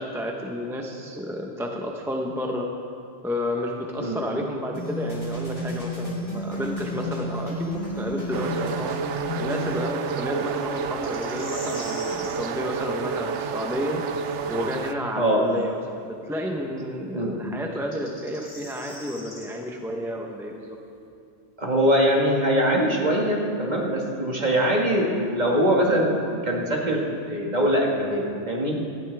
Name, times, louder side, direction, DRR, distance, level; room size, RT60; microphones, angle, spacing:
voice 1, 0.0-2.7 3.2-20.8, left 1 dB, 5° right, 1 dB, 0.8 m, -31 dB
sound 1, 4.7-9.7, equal, 25° left, 3.6 m, -31 dB
sound 2, 8.3-14.9, right 5 dB, 90° right, 1.0 m, -30 dB
sound 3, 11.0-12.4 15.5-15.6 17.7-19.5, left 1 dB, 70° left, 3.2 m, -41 dB
voice 2, 21.6-28.8, equal, 40° right, -2 dB, 2.0 m, -22 dB
18.0 x 13.0 x 3.4 m, 2.5 s
omnidirectional pair, 1.2 m